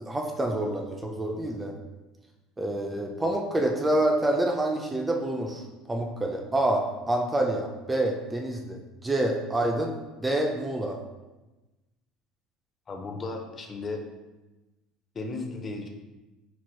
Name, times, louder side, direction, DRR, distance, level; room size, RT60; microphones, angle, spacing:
voice 1, 0.0-1.7 2.6-9.9 10.2-11.0, right 1 dB, 15° right, 2 dB, 0.4 m, -27 dB
voice 2, 12.9-14.0 15.1-15.9, left 3 dB, 30° left, 4 dB, 0.5 m, -35 dB
4.5 x 2.9 x 2.2 m, 1.1 s
supercardioid pair, 95°, 0 cm